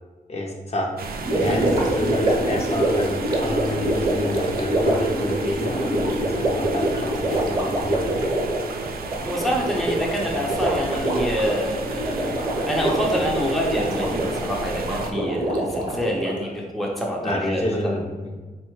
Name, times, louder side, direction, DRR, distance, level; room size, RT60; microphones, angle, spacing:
voice 1, 0.3-8.0 17.2-18.4, left 1 dB, 45° left, 0 dB, 0.7 m, -28 dB
sound 1, 1.0-15.1, right 3 dB, 85° right, 0.4 m, -33 dB
Gurgling, 1.2-16.5, right 1 dB, 30° right, 0.8 m, -25 dB
voice 2, 9.2-17.6, equal, ahead, -2 dB, 0.5 m, -27 dB
4.1 x 2.2 x 4.5 m, 1.3 s
wide cardioid pair, 150°, 15 cm